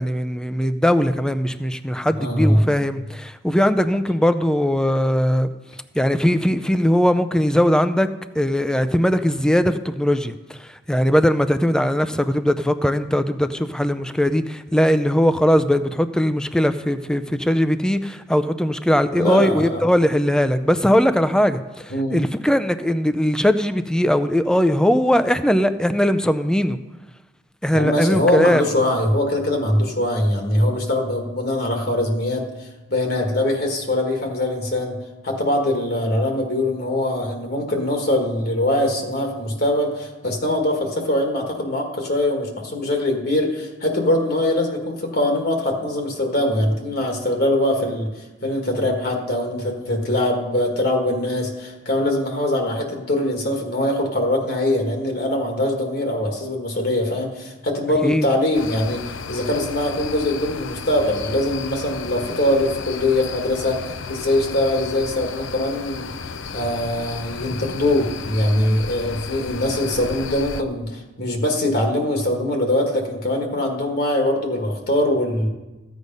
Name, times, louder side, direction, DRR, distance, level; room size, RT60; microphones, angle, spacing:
voice 1, 0.0-5.5 5.9-8.1 8.3-26.8 27.6-28.6 58.0-58.3, equal, 5° left, 0.5 m, -20 dB
voice 2, 2.2-2.6 19.1-19.8 21.9-22.2 27.7-35.0 35.2-48.1 48.4-63.8 64.1-66.1 66.5-75.5, left 1 dB, 55° left, 1.6 m, -22 dB
sound 1, 58.5-70.6, left 5 dB, 90° left, 0.6 m, -33 dB
14.5 x 8.1 x 5.3 m
head